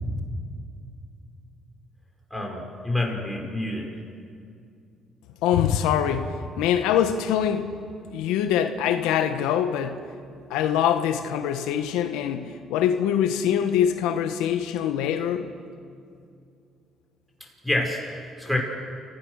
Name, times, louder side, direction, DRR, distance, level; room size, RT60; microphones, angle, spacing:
voice 1, 2.3-3.9 17.6-18.6, left 1 dB, ahead, 5.6 m, -28 dB
voice 2, 5.4-7.9 8.1-10.1 10.5-15.5, left 9 dB, 90° left, 1.2 m, -24 dB
29.0 x 15.5 x 6.4 m
cardioid pair, 90°, 0 cm